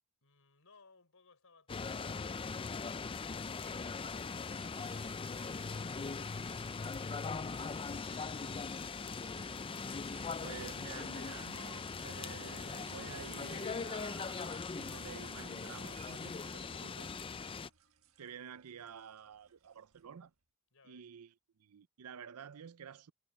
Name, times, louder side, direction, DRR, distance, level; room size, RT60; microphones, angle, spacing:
voice 1, 0.2-9.2 20.7-21.1, left 4 dB, 65° left, 5.2 m, -66 dB
sound 1, 1.7-17.7, left 4 dB, 25° left, 0.4 m, -40 dB
sound 2, 3.4-20.3, right 11 dB, 65° right, 1.5 m, -60 dB
voice 2, 10.4-17.1 18.2-20.3 20.9-21.3 21.6-23.1, right 7 dB, 85° right, 0.5 m, -50 dB
head